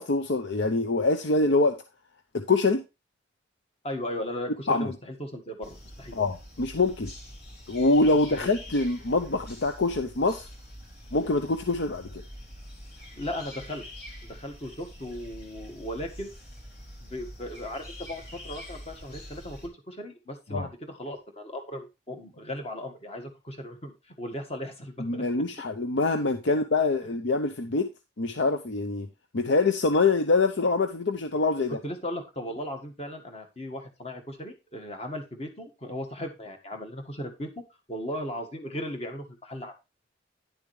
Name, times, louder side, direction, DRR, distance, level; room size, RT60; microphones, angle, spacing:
voice 1, 0.0-1.8 2.3-2.8 4.7-4.9 6.1-7.1 7.7-10.5 11.1-12.2 20.5-20.7 25.0-27.9 28.2-29.1 29.3-31.8, left 3 dB, 80° left, 7 dB, 0.7 m, -25 dB
voice 2, 3.8-6.2 8.3-8.5 13.2-13.8 14.2-16.3 17.0-25.2 31.8-37.5 37.9-39.7, left 1 dB, 35° left, 4 dB, 1.7 m, -37 dB
sound 1, 5.6-19.7, equal, 55° left, 3.2 m, -45 dB
10.5 x 7.1 x 3.2 m, 0.26 s
head